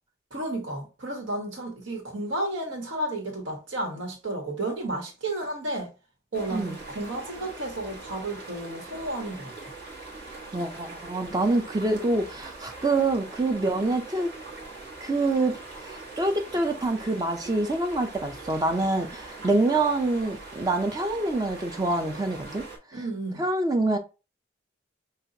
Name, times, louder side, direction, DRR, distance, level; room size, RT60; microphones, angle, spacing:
voice 1, 0.3-5.9 6.3-9.7 22.9-23.4, right 1 dB, 80° right, 1.5 m, -32 dB
sound 1, 6.3-22.8, right 3 dB, 55° right, 1.4 m, -42 dB
voice 2, 10.5-14.3 15.0-15.5 15.8-22.6 23.4-24.0, right 2 dB, 20° right, 0.4 m, -26 dB
5.4 x 2.4 x 2.7 m
head